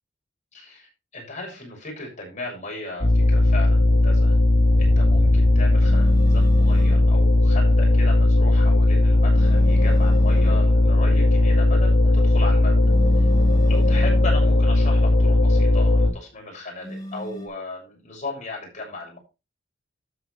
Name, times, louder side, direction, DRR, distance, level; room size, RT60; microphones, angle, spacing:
voice 1, 0.5-4.3 4.8-12.8 13.2-13.3 13.7-19.2, left 2 dB, 40° left, -1 dB, 6.6 m, -36 dB
sound 1, 3.0-16.1, left 2 dB, 55° left, 3.7 m, -17 dB
sound 2, 4.4-8.4, left 1 dB, 50° right, 2.2 m, -39 dB
sound 3, 5.8-7.1 9.3-10.7 12.8-14.4 16.8-17.5, equal, 20° left, 4.6 m, -35 dB
13.0 x 9.0 x 3.3 m, 0.28 s
head